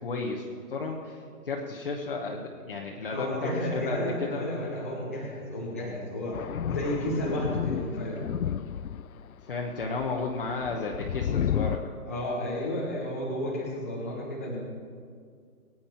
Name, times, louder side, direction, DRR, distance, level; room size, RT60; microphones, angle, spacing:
voice 1, 0.0-4.4 9.4-11.9, left 3 dB, 35° left, -1 dB, 1.2 m, -33 dB
voice 2, 3.1-6.4 6.7-8.2 12.1-14.6, left 1 dB, 10° left, -6 dB, 0.8 m, -32 dB
Thunder, 6.3-9.3 9.8-11.8, left 9 dB, 65° left, 0.6 m, -31 dB
23.0 x 9.3 x 4.4 m, 2.1 s
hypercardioid pair, 175°, 46 cm